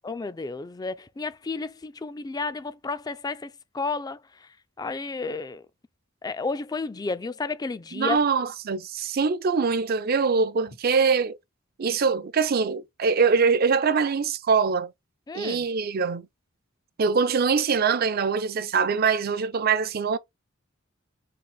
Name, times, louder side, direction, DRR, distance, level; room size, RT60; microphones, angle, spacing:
voice 1, 0.0-4.2 4.8-5.6 6.2-8.2 15.3-15.6, left 4 dB, 20° left, 0.3 m, -32 dB
voice 2, 7.9-11.4 11.8-14.9 15.3-16.2 17.0-20.2, right 5 dB, 50° right, 0.5 m, -23 dB
3.9 x 2.5 x 4.7 m
head